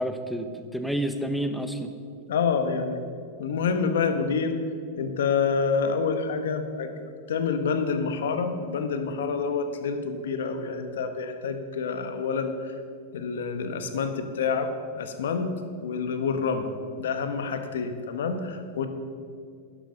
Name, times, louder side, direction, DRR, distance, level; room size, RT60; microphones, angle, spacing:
voice 1, 0.0-1.9, right 1 dB, ahead, 7 dB, 0.9 m, -29 dB
voice 2, 2.3-3.0 3.4-4.5 5.0-6.9 7.3-12.5 13.1-14.7 15.0-15.5 15.8-16.7 17.0-18.9, left 5 dB, 90° left, 8 dB, 1.3 m, -27 dB
12.0 x 11.5 x 5.3 m, 2.3 s
supercardioid pair, 140°, 0 cm